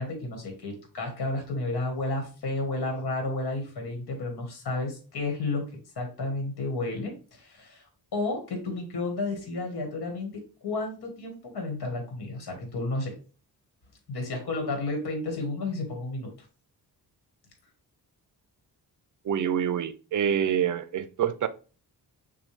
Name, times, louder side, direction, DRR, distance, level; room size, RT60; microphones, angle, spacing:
voice 1, 0.0-7.8 8.1-13.1 14.1-16.3, left 2 dB, 70° left, 1.6 m, -32 dB
voice 2, 19.2-21.5, right 9 dB, 50° right, 0.5 m, -26 dB
6.2 x 2.3 x 3.3 m
wide cardioid pair, 130°, 39 cm